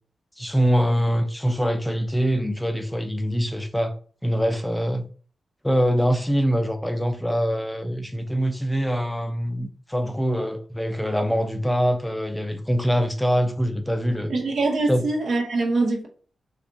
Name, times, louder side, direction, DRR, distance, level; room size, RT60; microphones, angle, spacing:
voice 1, 0.4-3.9 4.2-5.1 5.6-14.3 14.9-15.0, equal, 10° left, 0.4 m, -24 dB
voice 2, 14.3-16.1, right 3 dB, 70° right, 0.9 m, -23 dB
3.5 x 2.4 x 3.8 m
cardioid pair, 70°, 0 cm